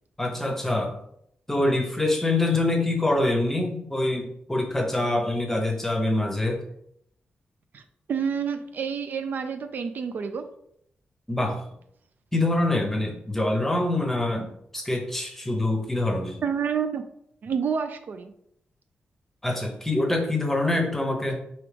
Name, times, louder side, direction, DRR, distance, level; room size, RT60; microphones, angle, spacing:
voice 1, 0.2-1.0 1.5-6.6 11.3-11.6 12.3-16.4 19.4-21.4, left 2 dB, 10° left, 2 dB, 0.8 m, -25 dB
voice 2, 8.1-10.4 16.4-17.0 17.4-18.3, right 6 dB, 60° right, 8 dB, 0.4 m, -28 dB
4.7 x 3.0 x 3.3 m, 0.72 s
wide cardioid pair, 125°, 4 cm